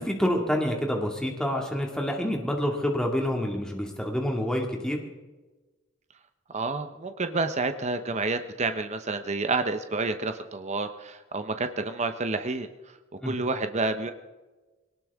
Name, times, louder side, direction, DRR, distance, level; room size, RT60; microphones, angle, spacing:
voice 1, 0.0-5.0 13.2-13.4, equal, 5° left, 1 dB, 2.1 m, -27 dB
voice 2, 6.5-12.7 13.2-14.1, right 3 dB, 35° right, 8 dB, 0.8 m, -29 dB
21.5 x 18.5 x 3.6 m, 1.2 s
head